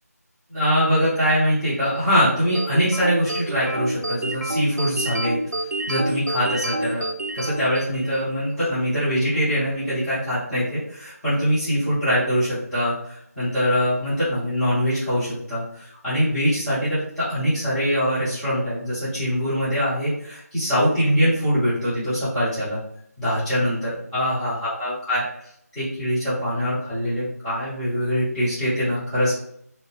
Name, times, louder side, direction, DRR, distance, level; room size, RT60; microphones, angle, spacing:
voice 1, 0.5-5.4 5.9-7.1 7.3-22.8 23.2-25.3 25.7-29.3, equal, 5° left, -16 dB, 0.8 m, -23 dB
sound 1, 2.6-8.3, right 1 dB, 75° right, 0.4 m, -28 dB
2.7 x 2.2 x 3.2 m, 0.70 s
figure-of-eight pair, 165°, 9 cm